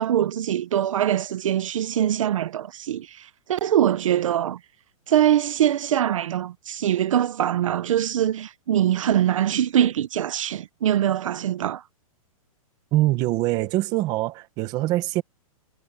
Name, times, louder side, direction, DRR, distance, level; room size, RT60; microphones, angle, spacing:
voice 1, 0.0-4.6 5.1-11.8, right 11 dB, 60° right, 0.8 m, -23 dB
voice 2, 12.9-15.2, right 17 dB, 20° right, 1.3 m, -23 dB
hypercardioid pair, 175°, 19 cm